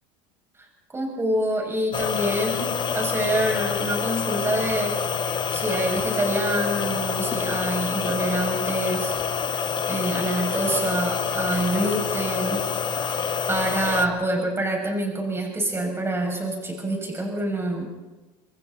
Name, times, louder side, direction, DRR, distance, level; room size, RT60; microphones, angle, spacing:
voice 1, 0.9-5.0 5.5-9.1 9.9-12.6 13.5-17.9, right 1 dB, 15° right, 0 dB, 7.3 m, -26 dB
sound 1, 1.9-14.1, left 6 dB, 30° left, 1.6 m, -27 dB
27.5 x 22.0 x 4.3 m, 1.2 s
supercardioid pair, 115°, 15 cm